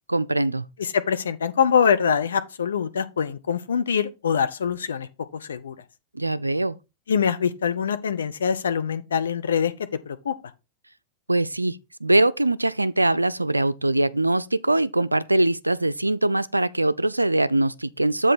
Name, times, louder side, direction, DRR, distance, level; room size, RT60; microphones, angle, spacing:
voice 1, 0.1-0.7 6.1-6.8 11.3-18.3, right 2 dB, 85° right, 0.3 m, -22 dB
voice 2, 0.8-5.1 5.4-5.7 7.1-9.7 10.1-10.3, left 7 dB, 70° left, 0.7 m, -24 dB
7.8 x 3.9 x 5.0 m
figure-of-eight pair, 90°, 0 cm